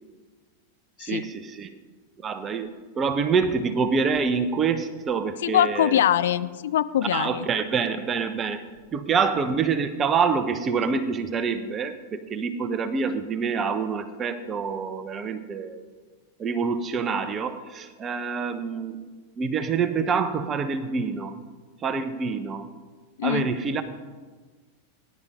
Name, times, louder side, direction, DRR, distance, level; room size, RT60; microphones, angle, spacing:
voice 1, 1.0-1.7 2.2-6.0 7.1-8.7 8.9-15.8 16.4-19.1 19.4-21.4 21.8-22.7 23.2-23.8, right 5 dB, 25° right, 11 dB, 1.1 m, -26 dB
voice 2, 5.4-7.5 23.2-23.5, left 11 dB, 60° left, 14 dB, 0.5 m, -23 dB
18.5 x 10.5 x 5.1 m, 1.4 s
figure-of-eight pair, 90°, 0 cm